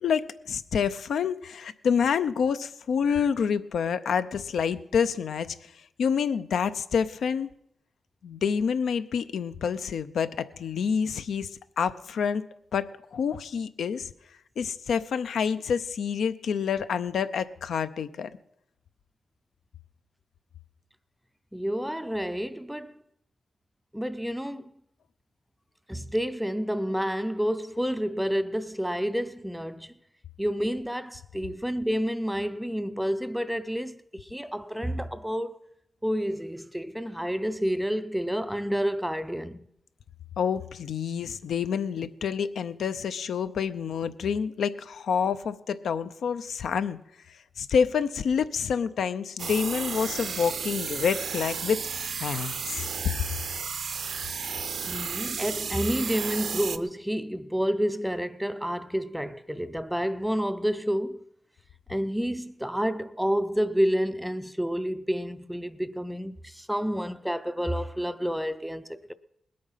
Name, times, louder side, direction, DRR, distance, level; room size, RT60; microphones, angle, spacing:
voice 1, 0.0-5.7 6.0-7.5 8.2-11.5 11.8-12.4 12.7-14.1 14.6-18.3 40.4-47.0 47.6-51.8 52.2-52.9, left 6 dB, 80° left, 0.6 m, -28 dB
voice 2, 21.5-23.0 23.9-24.7 25.9-30.0 30.4-35.5 36.0-39.7 54.8-61.2 61.9-69.1, equal, ahead, 0.4 m, -29 dB
sound 1, 49.4-56.8, right 6 dB, 55° right, 0.6 m, -33 dB
20.0 x 8.6 x 5.6 m
wide cardioid pair, 155°, 0 cm